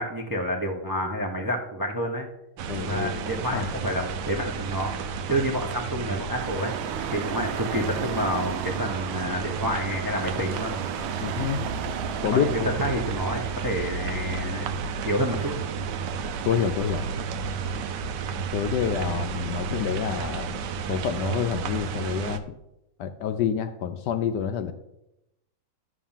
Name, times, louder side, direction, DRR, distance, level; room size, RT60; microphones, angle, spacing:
voice 1, 0.0-2.3 2.8-4.9 5.3-6.7 7.1-10.7 12.3-14.7 15.0-15.6, equal, 30° right, 1 dB, 0.4 m, -29 dB
sound 1, 2.6-22.4, right 5 dB, 70° right, 1.1 m, -32 dB
voice 2, 2.7-3.2 3.5-3.7 11.2-11.7 12.2-12.7 16.5-17.1 18.5-20.6 20.9-22.6 23.0-24.7, left 8 dB, 70° left, 9 dB, 1.0 m, -27 dB
sound 2, 6.3-17.1, right 8 dB, 85° right, 1.6 m, -36 dB
11.0 x 3.7 x 7.2 m, 0.89 s
omnidirectional pair, 2.2 m